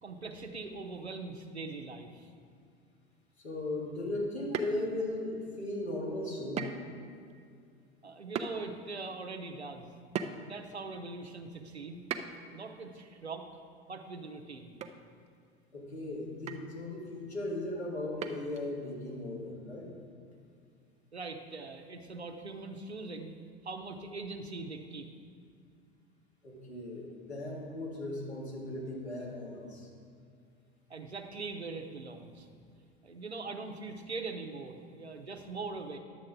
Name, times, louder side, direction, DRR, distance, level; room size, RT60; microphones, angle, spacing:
voice 1, 0.0-2.3 8.0-9.9 10.4-12.0 12.5-13.5 13.9-14.7 21.1-23.3 23.6-25.1 30.9-32.5 33.0-36.0, right 3 dB, 85° right, 4 dB, 0.8 m, -42 dB
voice 2, 3.4-6.7 15.7-19.9 26.4-29.9, left 1 dB, 85° left, -5 dB, 2.2 m, -37 dB
sound 1, 4.5-5.2 6.6-7.0 7.3-7.4 8.4-8.6 10.1-10.6 12.1-12.5 14.3-14.4 14.8-15.0 15.3-15.4 16.5-16.8 18.2-18.7, right 7 dB, 20° right, 0.5 m, -37 dB
11.0 x 7.6 x 3.6 m, 2.3 s
figure-of-eight pair, 80°, 32 cm